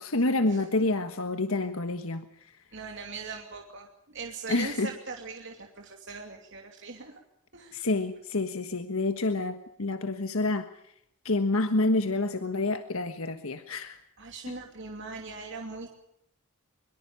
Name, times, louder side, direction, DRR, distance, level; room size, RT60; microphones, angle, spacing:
voice 1, 0.0-2.5 4.5-4.9 7.7-10.7 11.2-14.0, left 2 dB, 75° left, 8 dB, 1.5 m, -28 dB
voice 2, 2.7-7.2 7.5-7.9 14.2-15.9, right 4 dB, 55° right, 3 dB, 2.7 m, -41 dB
23.5 x 23.0 x 7.1 m, 0.75 s
head